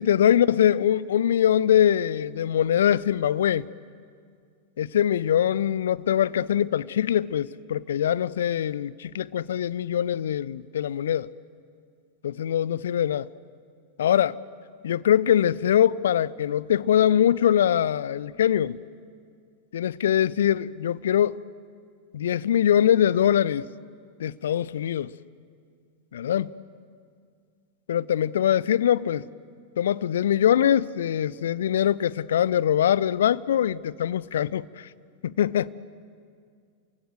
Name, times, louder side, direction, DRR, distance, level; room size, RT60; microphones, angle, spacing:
voice 1, 0.0-3.7 4.8-11.3 12.2-13.3 14.0-14.4 14.8-18.8 19.7-21.4 22.1-23.7 24.2-25.1 26.1-26.5 27.9-29.3 29.8-34.9 35.2-35.7, left 10 dB, 60° left, 0.6 m, -23 dB
29.5 x 24.5 x 8.0 m
figure-of-eight pair, 90°, 0 cm